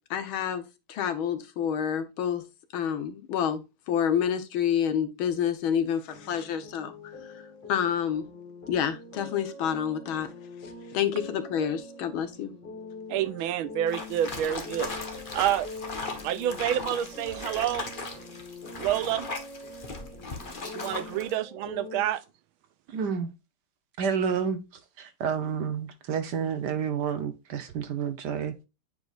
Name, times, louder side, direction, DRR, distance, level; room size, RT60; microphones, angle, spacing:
voice 1, 0.1-2.4 2.7-3.6 3.9-7.1 7.7-8.2 8.7-10.3 10.9-12.5, left 8 dB, 75° left, 1.8 m, -28 dB
sound 1, 6.1-22.0, left 2 dB, 10° left, 1.9 m, -44 dB
voice 2, 13.1-14.9 15.3-15.7 16.2-17.9 18.8-19.3 20.7-22.2, right 11 dB, 85° right, 1.4 m, -28 dB
sound 2, 13.9-21.3, left 3 dB, 35° left, 1.0 m, -38 dB
voice 3, 22.9-23.3 24.0-24.6 25.0-28.7, right 7 dB, 65° right, 1.2 m, -29 dB
9.1 x 4.8 x 2.4 m
omnidirectional pair, 2.3 m